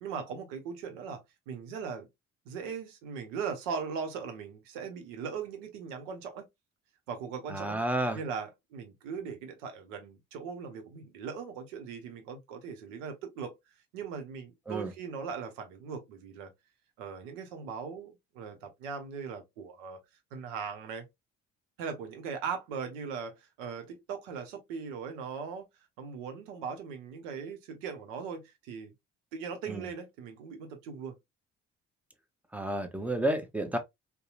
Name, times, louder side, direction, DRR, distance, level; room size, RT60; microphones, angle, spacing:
voice 1, 0.0-2.1 2.5-6.4 7.1-7.8 8.1-13.5 13.9-16.5 17.0-20.0 20.3-21.0 21.8-25.7 26.0-28.9 29.3-31.1, right 6 dB, 80° right, 0.7 m, -39 dB
voice 2, 7.5-8.2 14.7-14.9 29.7-29.9 32.5-33.8, right 1 dB, 5° right, 0.6 m, -31 dB
2.7 x 2.1 x 2.3 m
hypercardioid pair, 45°, 36 cm